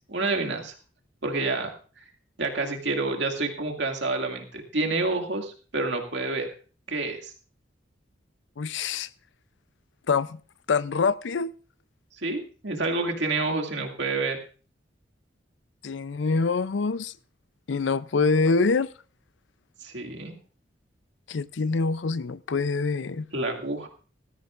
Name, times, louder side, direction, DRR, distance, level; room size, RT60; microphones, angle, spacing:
voice 1, 0.1-0.7 1.2-1.7 2.4-6.5 6.9-7.3 12.2-14.4 19.8-20.4 23.3-23.9, right 3 dB, 70° right, 2.3 m, -28 dB
voice 2, 8.6-9.1 10.1-10.4 10.7-11.5 15.8-17.1 17.7-18.9 21.3-23.3, left 4 dB, 75° left, 0.5 m, -25 dB
19.0 x 13.5 x 2.5 m
head